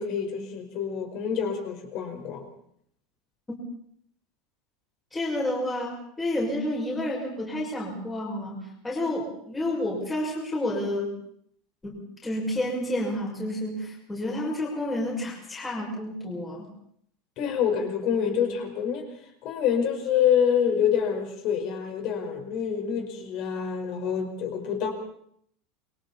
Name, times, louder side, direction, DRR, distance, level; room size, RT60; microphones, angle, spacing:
voice 1, 0.0-2.4 17.4-19.1 19.4-24.9, left 8 dB, 40° left, 4 dB, 5.0 m, -26 dB
voice 2, 5.1-11.1 11.8-12.0 12.2-16.7, left 1 dB, 10° left, -3 dB, 6.4 m, -30 dB
28.5 x 23.5 x 4.3 m, 0.67 s
supercardioid pair, 170°, 0 cm